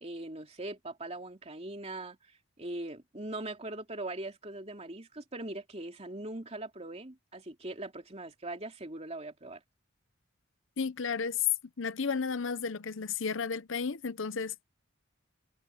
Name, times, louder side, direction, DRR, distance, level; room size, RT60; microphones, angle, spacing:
voice 1, 0.0-9.6, right 2 dB, 30° right, 3.0 m, -41 dB
voice 2, 10.8-11.5 11.8-14.6, left 5 dB, 65° left, 0.8 m, -33 dB
head